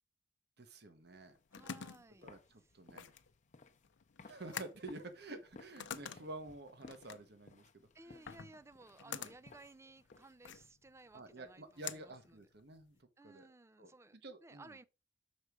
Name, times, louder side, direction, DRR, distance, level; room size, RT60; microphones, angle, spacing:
voice 1, 0.6-1.4 2.2-3.1 4.2-7.7 8.0-8.2 9.0-9.3 11.1-13.5 13.8-13.9 14.2-14.8, right 2 dB, 60° right, 1.1 m, -50 dB
sound 1, 1.1-13.0, left 8 dB, 80° left, 0.6 m, -49 dB
sound 2, 1.3-10.5, left 3 dB, 40° left, 0.7 m, -61 dB
voice 2, 1.5-2.3 2.6-2.7 7.9-12.4 13.2-14.9, right 2 dB, 15° right, 0.4 m, -58 dB
6.5 x 4.7 x 5.1 m
head